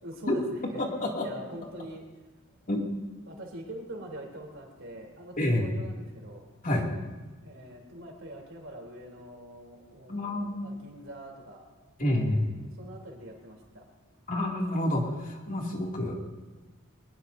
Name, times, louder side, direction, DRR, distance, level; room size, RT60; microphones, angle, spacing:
voice 1, 0.0-0.8 1.2-2.1 3.2-6.4 7.4-11.6 12.6-13.9, right 1 dB, 65° right, 1 dB, 3.4 m, -44 dB
voice 2, 0.8-1.3 2.7-2.8 5.4-5.7 6.6-6.9 10.1-10.6 12.0-12.4 14.3-16.1, left 1 dB, 40° left, -1 dB, 2.6 m, -28 dB
23.0 x 20.0 x 2.7 m, 1.2 s
head